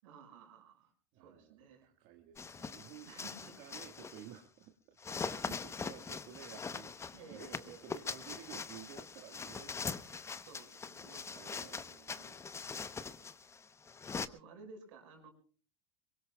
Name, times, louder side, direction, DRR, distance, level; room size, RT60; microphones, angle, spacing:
voice 1, 0.0-1.9 3.1-3.6 7.1-8.0 10.3-11.7 12.2-12.4 13.1-13.4 14.3-15.3, right 5 dB, 75° right, 5 dB, 5.8 m, -55 dB
voice 2, 1.1-3.1 3.5-5.0 5.3-7.0 7.3-10.6 11.3-12.4 12.9-13.3, right 10 dB, 55° right, 5 dB, 1.7 m, -54 dB
sound 1, 2.4-4.4 5.0-14.3, left 5 dB, 15° left, 0.8 m, -42 dB
23.5 x 23.0 x 2.3 m, 0.40 s
supercardioid pair, 115°, 17 cm